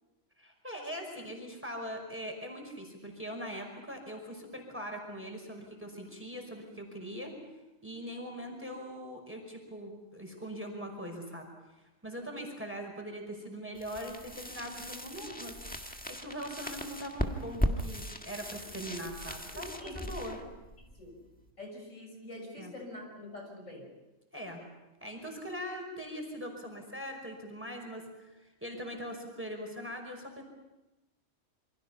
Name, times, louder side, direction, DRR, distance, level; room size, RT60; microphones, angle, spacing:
voice 1, 0.4-7.4 7.8-20.4 22.6-22.7 24.3-24.7 25.0-30.4, equal, 10° right, 2 dB, 5.4 m, -41 dB
sound 1, 13.7-21.5, equal, 5° left, 1.6 m, -38 dB
voice 2, 21.6-23.9, left 1 dB, 80° left, 2 dB, 6.6 m, -45 dB
28.0 x 25.0 x 5.7 m, 1.0 s
omnidirectional pair, 1.3 m